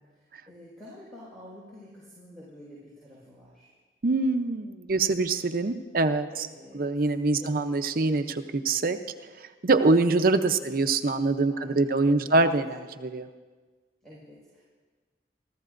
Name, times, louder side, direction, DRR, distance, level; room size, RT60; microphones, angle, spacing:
voice 1, 0.1-3.7 6.3-6.9 7.4-7.5 10.1-10.8 11.5-12.5 14.0-14.6, left 1 dB, ahead, -8 dB, 5.2 m, -49 dB
voice 2, 4.0-6.5 6.7-9.0 9.6-13.3, right 3 dB, 50° right, 8 dB, 0.6 m, -24 dB
26.5 x 14.0 x 2.6 m, 1.4 s
head